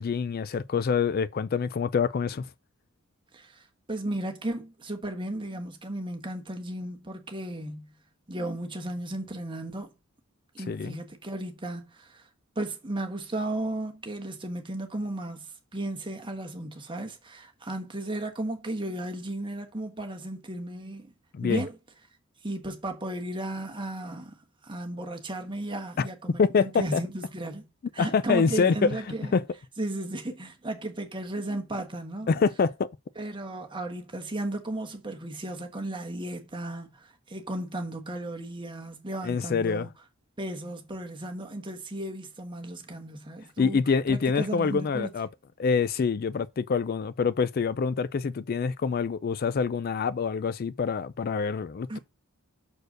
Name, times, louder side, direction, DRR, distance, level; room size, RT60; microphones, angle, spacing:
voice 1, 0.0-2.5 10.7-11.0 21.3-21.6 26.0-26.1 26.4-27.0 28.0-28.9 29.3-29.4 32.3-32.9 39.2-39.9 43.6-45.3 45.6-52.0, left 5 dB, 45° left, 0.3 m, -26 dB
voice 2, 3.3-7.9 8.3-9.9 10.5-12.3 12.5-21.1 21.4-21.8 22.4-24.4 24.6-29.3 29.8-32.3 33.2-39.9 40.4-43.8 44.1-45.1 51.9-52.0, right 1 dB, 20° right, 1.2 m, -35 dB
6.5 x 4.4 x 6.4 m
head